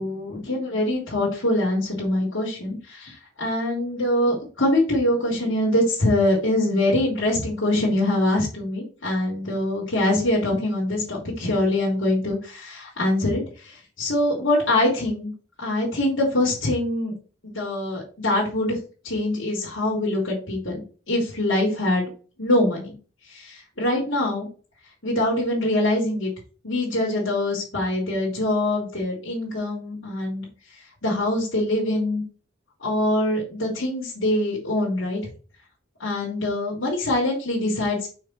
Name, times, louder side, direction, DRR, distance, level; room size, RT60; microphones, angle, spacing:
voice 1, 0.0-15.3 15.6-17.1 17.4-18.8 19.0-22.1 22.4-22.9 23.3-24.5 25.0-26.3 26.6-30.5 31.0-32.2 32.8-35.2 36.0-38.1, left 1 dB, 80° left, -5 dB, 3.0 m, -24 dB
6.3 x 4.6 x 4.4 m, 0.36 s
head